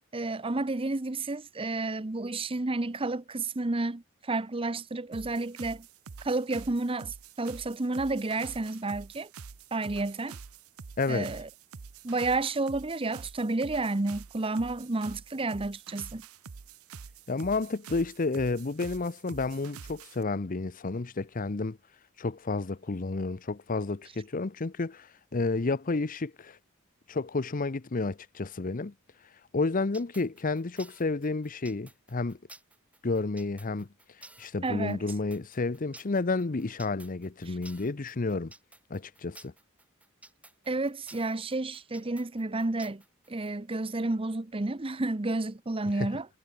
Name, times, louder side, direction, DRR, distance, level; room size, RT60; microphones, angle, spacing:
voice 1, 0.1-5.9 6.2-9.3 9.7-10.4 11.1-11.5 12.0-16.2 34.6-35.0 37.5-37.6 40.7-43.0 43.3-46.3, right 2 dB, 25° right, 0.8 m, -31 dB
sound 1, 5.1-20.2, right 5 dB, 90° right, 0.8 m, -47 dB
voice 2, 11.0-11.3 17.3-21.8 22.2-26.6 27.1-28.9 29.5-32.4 33.0-33.9 34.4-38.5 38.9-39.5 46.0-46.2, left 3 dB, 40° left, 0.7 m, -31 dB
sound 2, 29.9-43.5, right 2 dB, 5° right, 5.4 m, -52 dB
head